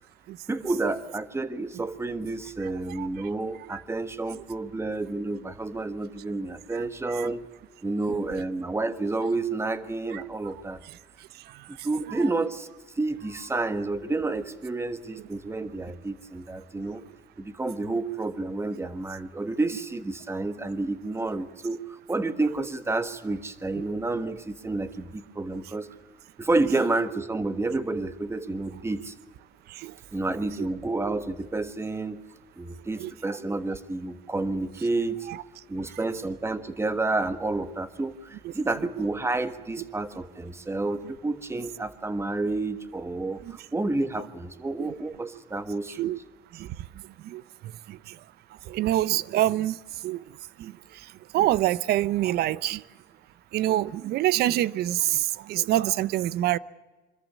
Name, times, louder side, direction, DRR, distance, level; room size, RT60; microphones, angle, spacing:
voice 1, 0.5-7.5 7.8-10.8 11.8-12.7 13.0-17.0 17.4-25.9 26.4-29.1 30.1-32.2 32.6-35.3 35.7-46.0, right 2 dB, 15° right, 1.4 m, -30 dB
voice 2, 48.7-49.8 50.0-50.2 50.6-50.7 51.3-52.8 53.5-56.6, right 14 dB, 70° right, 0.6 m, -26 dB
25.0 x 13.5 x 8.4 m
cardioid pair, 110°, 17 cm